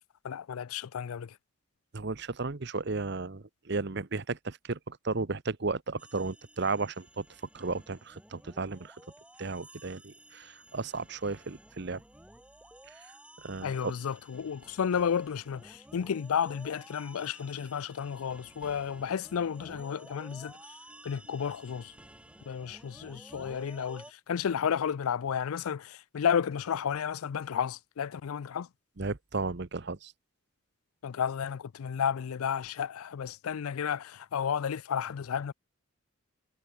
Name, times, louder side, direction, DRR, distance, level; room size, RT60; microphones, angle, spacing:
voice 1, 0.2-1.3 13.6-20.6 21.0-21.9 22.5-28.7 31.0-35.5, left 7 dB, 85° left, 0.4 m, -32 dB
voice 2, 1.9-7.2 7.5-9.0 9.4-12.0 12.9-13.1 13.4-13.9 29.0-30.1, right 3 dB, 55° right, 0.9 m, -34 dB
sound 1, 6.0-24.1, right 1 dB, 5° right, 2.9 m, -54 dB
head